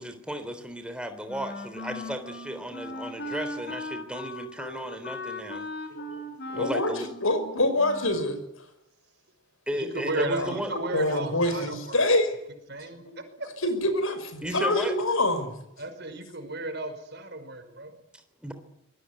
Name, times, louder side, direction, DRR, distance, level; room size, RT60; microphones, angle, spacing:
voice 1, 0.0-2.2 2.4-5.7 6.5-7.1 9.7-10.7 14.4-14.9 18.1-18.5, equal, 5° right, 8 dB, 3.4 m, -34 dB
Wind instrument woodwind instrument, 1.3-8.4, left 1 dB, 50° left, 4.8 m, -38 dB
voice 2, 6.5-6.9 7.2-8.4 10.4-10.5 10.9-12.4 13.0-13.2 13.6-15.5, left 1 dB, 75° left, 11 dB, 5.6 m, -25 dB
voice 3, 9.7-12.0 12.7-13.0 15.8-18.0, right 2 dB, 50° right, 7 dB, 5.3 m, -34 dB
26.0 x 21.5 x 9.6 m, 0.81 s
head